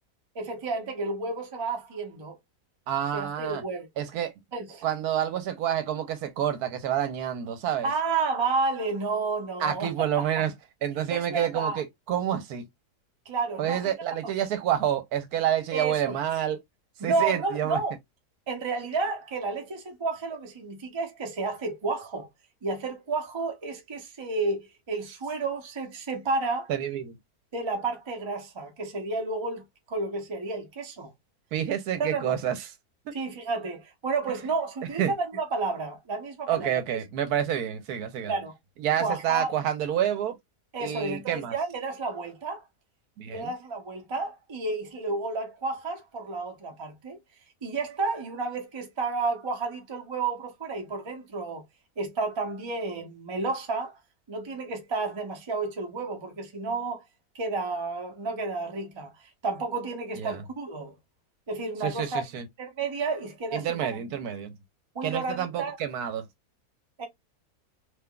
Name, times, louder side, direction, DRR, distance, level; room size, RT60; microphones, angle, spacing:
voice 1, 0.3-2.4 3.1-3.9 4.5-4.8 7.8-10.2 11.1-11.8 13.3-13.9 14.2-14.3 15.7-16.2 17.0-17.9 18.5-22.3 22.6-26.7 27.5-31.1 32.0-32.4 33.1-37.0 38.3-38.5 39.0-39.5 40.7-42.6 43.3-47.2 47.6-51.6 52.0-54.0 54.3-57.0 57.3-61.0 61.5-62.2 62.6-64.0 64.9-65.8 67.0-67.1, right 3 dB, 30° right, 0.5 m, -31 dB
voice 2, 2.9-3.6 4.0-4.3 4.8-7.9 9.6-10.5 10.8-12.6 13.6-16.6 17.0-17.8 26.7-27.2 31.5-32.6 33.1-33.2 35.0-35.1 36.5-38.3 38.8-40.4 40.8-41.5 43.2-43.5 60.2-60.4 61.8-62.5 63.5-64.5 65.0-66.3, right 10 dB, 75° right, 1.1 m, -28 dB
3.6 x 2.8 x 2.3 m
omnidirectional pair, 1.7 m